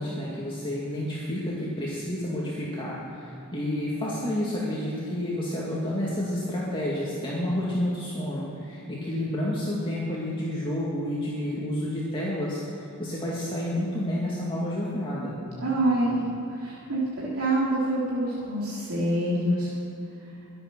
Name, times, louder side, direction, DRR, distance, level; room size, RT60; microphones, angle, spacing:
voice 1, 0.0-15.4, left 1 dB, 25° left, -6 dB, 2.2 m, -30 dB
voice 2, 15.6-16.2 16.5-19.7, right 1 dB, 80° right, -7 dB, 2.9 m, -26 dB
23.0 x 8.4 x 6.1 m, 2.8 s
head